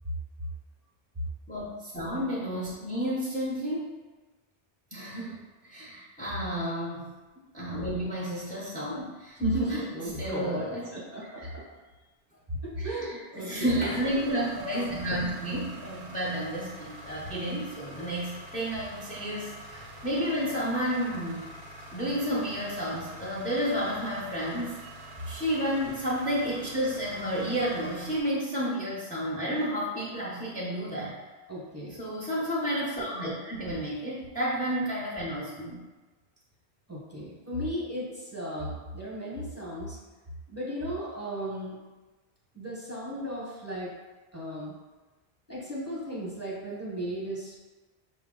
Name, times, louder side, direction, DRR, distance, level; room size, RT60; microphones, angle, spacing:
voice 1, 1.5-3.9 4.9-7.1 7.5-9.9 10.2-10.9 11.4-11.5 12.8-21.5 21.9-24.9 25.3-31.2 31.9-35.8, equal, 10° left, -6 dB, 0.6 m, -31 dB
voice 2, 9.4-11.6 12.8-13.8 31.5-32.0 36.9-40.0 40.5-41.8 42.5-43.9 44.3-44.7 45.5-47.5, right 1 dB, 15° right, -6 dB, 1.0 m, -35 dB
sound 1, 13.7-28.2, right 1 dB, 30° right, 0.6 m, -46 dB
5.6 x 2.2 x 3.8 m, 1.2 s
omnidirectional pair, 1.1 m